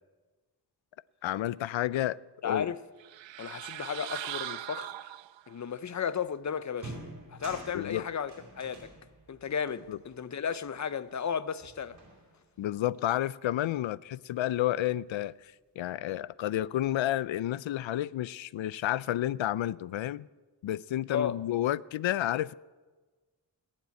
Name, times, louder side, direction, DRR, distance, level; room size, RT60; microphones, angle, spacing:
voice 1, 1.2-2.2 2.4-2.7 7.7-8.1 9.9-10.0 12.6-20.3 20.6-22.5, left 13 dB, 85° left, 0.5 m, -31 dB
voice 2, 2.4-2.8 3.4-4.9 5.5-7.0 7.3-8.9 9.3-12.0 21.1-21.4, left 7 dB, 40° left, 0.6 m, -34 dB
sound 1, 3.0-5.6, right 13 dB, 80° right, 0.5 m, -40 dB
sound 2, 6.1-6.3 6.7-11.3 11.6-12.6, right 2 dB, 45° right, 4.7 m, -48 dB
19.0 x 7.5 x 9.4 m
wide cardioid pair, 140°, 45 cm